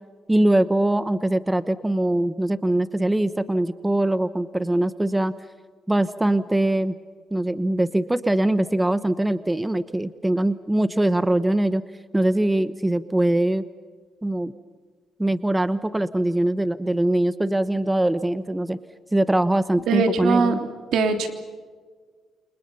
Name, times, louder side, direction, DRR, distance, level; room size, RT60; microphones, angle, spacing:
voice 1, 0.3-5.3 5.9-6.9 7.3-11.8 12.1-13.6 14.2-14.5 15.2-18.8 19.1-20.6, right 1 dB, 10° right, 13 dB, 1.0 m, -22 dB
voice 2, 19.9-21.3, right 4 dB, 75° right, 6 dB, 3.3 m, -22 dB
29.5 x 27.5 x 5.6 m, 1.5 s
cardioid pair, 90°, 0 cm